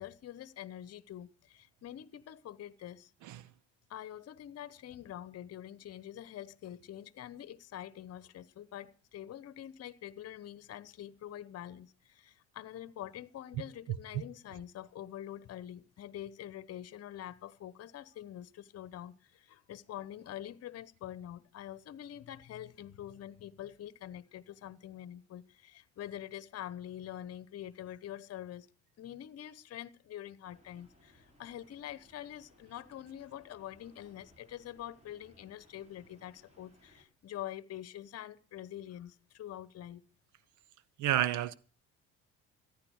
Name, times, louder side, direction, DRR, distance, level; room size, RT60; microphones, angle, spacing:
voice 1, 0.0-3.1 3.9-28.7 29.0-40.0, left 11 dB, 50° left, 1.0 m, -45 dB
sound 1, 30.5-37.1, equal, 20° right, 6.8 m, -64 dB
voice 2, 41.0-41.5, right 12 dB, 70° right, 1.0 m, -30 dB
14.5 x 10.0 x 6.4 m
supercardioid pair, 70°, 31 cm